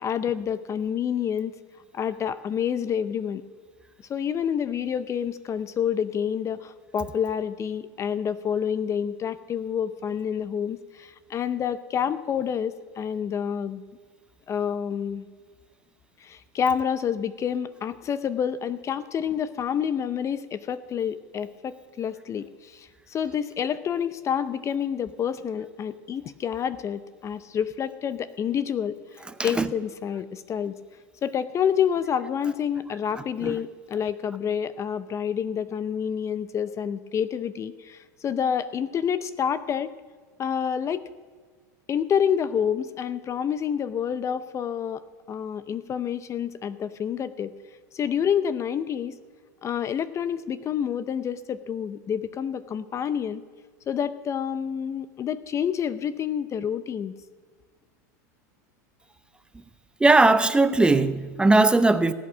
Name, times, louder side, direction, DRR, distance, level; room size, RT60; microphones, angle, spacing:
voice 1, 0.0-1.5 1.9-3.4 4.1-13.8 14.5-15.3 16.2-30.7 31.2-39.9 40.4-41.0 41.9-45.0 45.3-47.5 47.9-49.2 49.6-53.4 53.9-57.1, left 8 dB, 30° left, 0.6 m, -28 dB
voice 2, 29.4-29.7 33.4-33.6 60.0-62.1, right 2 dB, 10° right, 0.6 m, -19 dB
18.0 x 8.5 x 6.1 m
hypercardioid pair, 100°, 10 cm